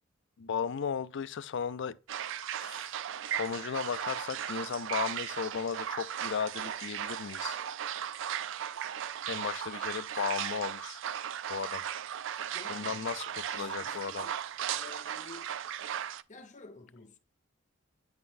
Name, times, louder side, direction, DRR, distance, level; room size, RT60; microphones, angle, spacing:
voice 1, 0.4-2.0 2.6-3.0 3.3-7.6 9.3-11.0 11.5-11.8 12.7-14.3, left 6 dB, 60° left, 0.4 m, -35 dB
sound 1, 2.1-16.2, right 9 dB, 65° right, 0.4 m, -37 dB
voice 2, 12.5-14.4 14.7-15.6 16.3-17.2, left 3 dB, 40° left, 0.9 m, -51 dB
9.5 x 3.9 x 2.6 m
head